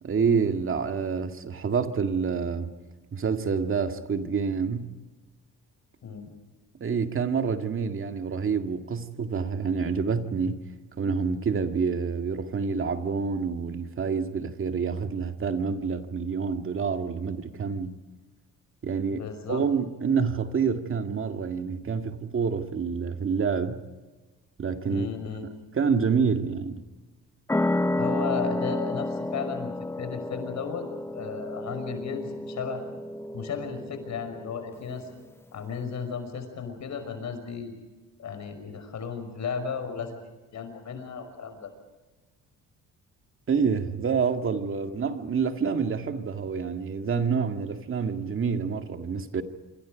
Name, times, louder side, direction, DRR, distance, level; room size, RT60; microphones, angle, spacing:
voice 1, 0.0-2.7 3.1-4.9 6.8-10.7 11.0-18.0 18.8-23.8 24.6-25.1 25.7-26.8 43.5-49.4, right 5 dB, 40° right, 2.1 m, -27 dB
voice 2, 19.1-19.6 24.9-25.5 28.0-29.7 30.0-30.9 31.1-32.8 33.3-35.1 35.5-37.7 38.2-41.7, left 6 dB, 55° left, 5.7 m, -34 dB
sound 1, 27.5-34.7, left 1 dB, 10° left, 0.7 m, -31 dB
27.0 x 25.5 x 5.1 m
cardioid pair, 110°, 33 cm